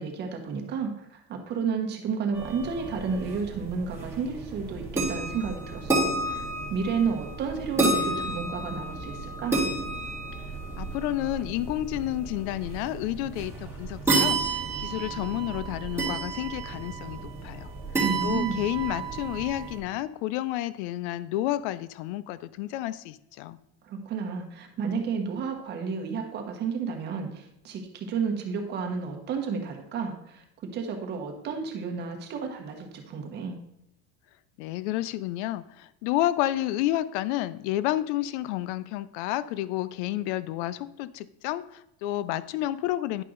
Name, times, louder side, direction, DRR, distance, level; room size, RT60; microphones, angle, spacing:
voice 1, 0.0-6.4 6.7-9.6 18.0-18.6 23.8-30.4 30.7-33.6, right 5 dB, 30° right, 3 dB, 1.2 m, -31 dB
sound 1, 2.3-19.8, right 3 dB, 10° right, 1.4 m, -31 dB
voice 2, 10.8-17.7 18.2-23.6 34.6-43.2, left 14 dB, 90° left, 16 dB, 0.5 m, -30 dB
10.0 x 5.6 x 3.8 m, 0.82 s
cardioid pair, 180°, 34 cm